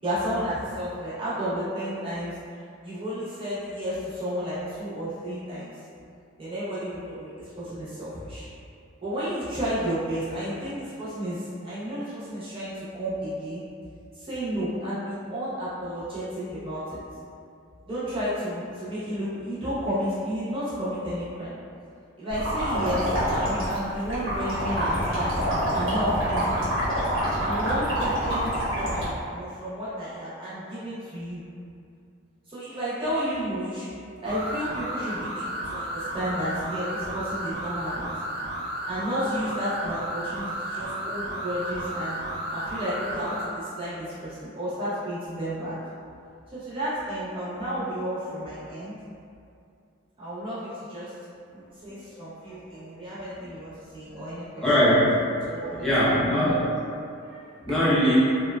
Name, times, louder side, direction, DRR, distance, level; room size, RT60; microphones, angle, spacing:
voice 1, 0.0-2.4 2.8-5.7 6.4-8.5 9.0-13.6 14.1-17.0 17.9-21.6 22.2-26.6 27.4-31.4 32.5-38.1 38.9-42.2 42.5-45.8 46.5-48.9 50.2-51.1 51.5-54.7 55.4-55.9, equal, 25° right, -12 dB, 0.8 m, -32 dB
sound 1, 22.3-29.1, equal, 85° right, 1.0 m, -26 dB
sound 2, 34.2-43.5, right 1 dB, 50° right, 0.4 m, -33 dB
voice 2, 54.6-55.1 55.8-56.7 57.6-58.2, equal, ahead, -12 dB, 0.6 m, -21 dB
2.9 x 2.2 x 2.2 m, 2.5 s
head